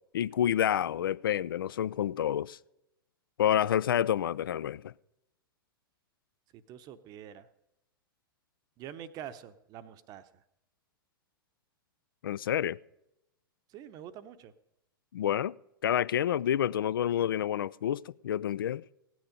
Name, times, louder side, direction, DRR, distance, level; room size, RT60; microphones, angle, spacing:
voice 1, 0.1-2.6 3.4-4.9 12.2-12.8 15.1-15.5 15.8-18.8, left 10 dB, 70° left, 0.4 m, -28 dB
voice 2, 6.7-7.5 8.8-10.3 13.7-14.5, right 10 dB, 35° right, 0.8 m, -45 dB
16.5 x 9.4 x 5.1 m
figure-of-eight pair, 105°, 12 cm